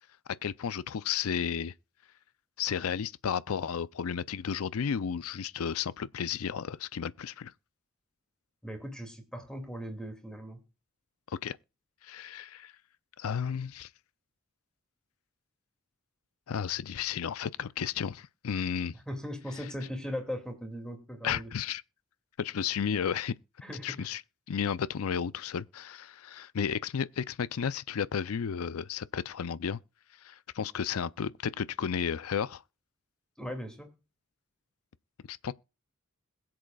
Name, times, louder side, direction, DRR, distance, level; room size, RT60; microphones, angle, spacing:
voice 1, 0.4-1.7 2.6-7.5 11.3-11.6 12.0-12.7 13.2-13.9 16.5-18.9 21.2-21.8 22.4-23.3 23.8-24.2 24.5-29.8 30.2-32.6 35.3-35.5, left 7 dB, 85° left, 0.5 m, -33 dB
voice 2, 8.6-10.6 19.1-21.5 23.6-24.1 33.4-34.0, equal, 5° left, 2.3 m, -39 dB
21.5 x 7.7 x 2.3 m
head